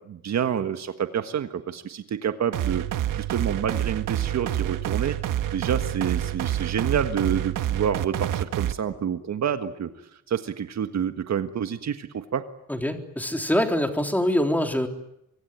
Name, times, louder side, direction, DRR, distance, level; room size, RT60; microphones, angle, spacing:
voice 1, 0.1-5.2 5.5-9.9 10.3-12.4, right 8 dB, 55° right, 8 dB, 1.6 m, -28 dB
sound 1, 2.5-8.7, right 12 dB, 80° right, 1.4 m, -27 dB
voice 2, 12.7-14.9, left 1 dB, 5° left, 4 dB, 3.7 m, -24 dB
25.0 x 24.5 x 9.3 m, 0.80 s
cardioid pair, 115°, 31 cm